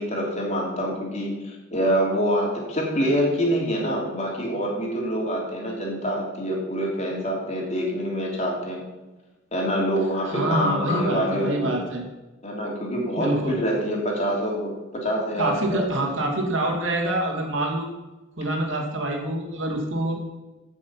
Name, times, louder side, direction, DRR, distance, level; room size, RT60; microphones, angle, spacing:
voice 1, 0.0-8.8 9.5-11.9 12.4-16.1 16.4-16.5, equal, 35° left, -1 dB, 3.1 m, -26 dB
voice 2, 10.3-12.0 13.2-13.6 15.4-17.9 18.4-20.2, right 1 dB, 75° right, 0 dB, 2.7 m, -26 dB
14.5 x 6.4 x 5.9 m, 1.1 s
head